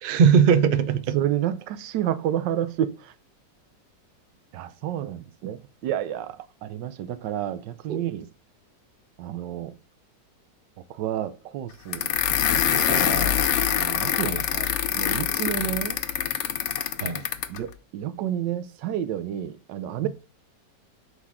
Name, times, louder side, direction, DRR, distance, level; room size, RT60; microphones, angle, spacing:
voice 1, 0.0-1.2 7.9-8.0 14.2-14.4 17.0-17.2, right 7 dB, 55° right, 0.6 m, -20 dB
voice 2, 1.1-3.1 4.5-8.3 9.2-9.7 10.9-12.1 12.5-13.4 13.7-16.0 17.5-20.1, right 11 dB, 85° right, 1.3 m, -30 dB
sound 1, 11.9-17.6, left 9 dB, 65° left, 0.7 m, -24 dB
6.8 x 4.9 x 3.6 m
omnidirectional pair, 1.9 m